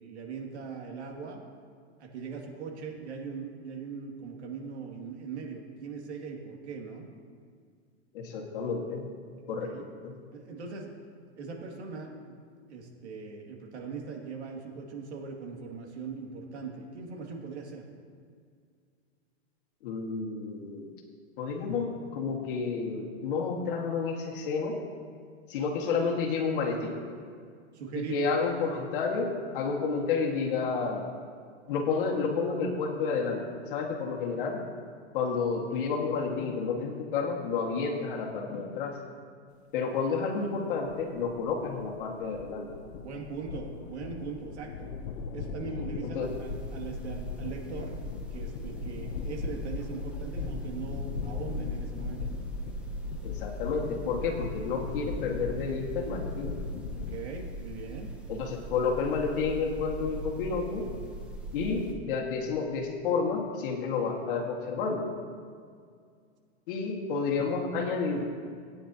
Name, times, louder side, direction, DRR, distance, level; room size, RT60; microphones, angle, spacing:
voice 1, 0.0-1.4 2.0-7.1 9.5-9.8 10.3-10.9 11.4-12.3 12.7-17.9 27.7-28.2 43.0-44.9 45.3-48.0 48.3-52.3 57.0-58.1, right 5 dB, 80° right, 0 dB, 2.4 m, -40 dB
voice 2, 8.1-9.1 9.5-9.7 10.0-10.1 19.8-20.9 21.4-24.8 25.5-27.0 27.9-31.1 31.7-34.6 35.1-39.0 39.7-42.7 46.0-46.3 53.2-56.6 58.3-60.9 61.5-65.1 66.7-68.3, left 5 dB, 50° left, 0 dB, 1.9 m, -30 dB
sound 1, 40.9-57.2, left 6 dB, 65° left, 0.7 m, -39 dB
sound 2, 46.2-61.9, right 2 dB, 5° right, 0.7 m, -40 dB
18.0 x 9.7 x 2.9 m, 2.1 s
supercardioid pair, 160°, 34 cm